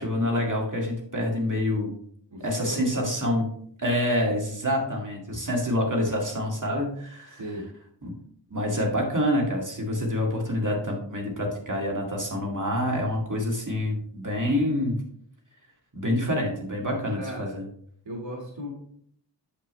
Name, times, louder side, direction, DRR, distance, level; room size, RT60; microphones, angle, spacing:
voice 1, 0.0-1.9 2.4-3.5 3.8-7.4 8.0-8.1 8.5-15.0 15.9-17.6, left 1 dB, 45° right, -1 dB, 2.1 m, -27 dB
voice 2, 2.3-3.1 7.3-7.6 17.2-17.5 18.0-18.7, equal, 85° right, -2 dB, 1.6 m, -36 dB
8.5 x 6.9 x 3.1 m, 0.65 s
wide cardioid pair, 55°, 43 cm